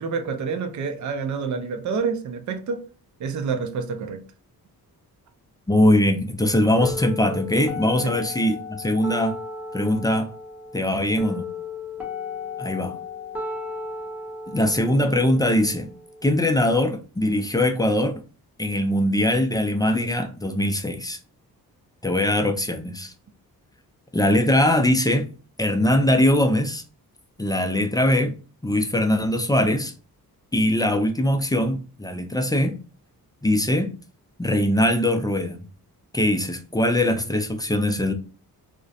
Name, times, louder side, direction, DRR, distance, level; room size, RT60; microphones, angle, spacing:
voice 1, 0.0-2.8 3.2-4.2 8.0-8.2, right 5 dB, 50° right, 0.5 m, -28 dB
voice 2, 5.7-9.4 9.7-10.3 10.7-11.4 12.6-13.0 14.5-15.9 16.2-18.1 18.6-21.2 22.0-23.1 24.1-25.3 25.6-26.8 27.4-28.3 28.6-29.9 30.5-32.8 33.4-33.9 34.4-35.6 36.1-38.1, left 1 dB, 10° left, 0.3 m, -21 dB
sound 1, 6.8-16.8, left 3 dB, 5° right, 0.8 m, -35 dB
2.4 x 2.1 x 2.5 m
cardioid pair, 65°, 38 cm